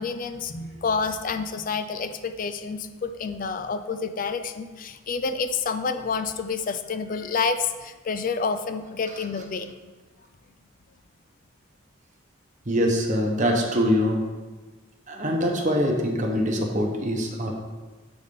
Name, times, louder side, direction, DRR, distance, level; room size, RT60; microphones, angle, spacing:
voice 1, 0.0-9.7, left 5 dB, 40° left, 9 dB, 0.4 m, -29 dB
voice 2, 12.7-14.3 15.1-17.5, equal, 35° right, 1 dB, 0.9 m, -23 dB
6.8 x 4.1 x 5.3 m, 1.3 s
head